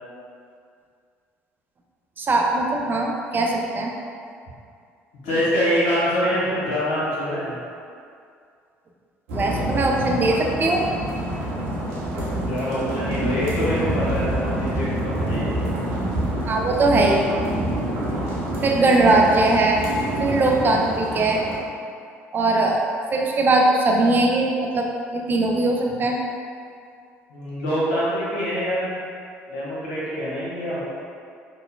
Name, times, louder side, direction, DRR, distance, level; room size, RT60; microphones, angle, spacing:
voice 1, 2.2-3.9 9.3-10.8 16.5-17.2 18.6-19.8 20.2-21.4 22.3-22.8 23.1-26.2, right 2 dB, 30° right, 0 dB, 0.5 m, -20 dB
voice 2, 5.2-7.6 12.4-15.6 27.3-29.0 29.5-30.8, equal, 65° left, -9 dB, 1.1 m, -25 dB
sound 1, 9.3-21.6, right 1 dB, 65° right, 0.7 m, -27 dB
5.3 x 2.2 x 2.2 m, 2.3 s
figure-of-eight pair, 55°, 7 cm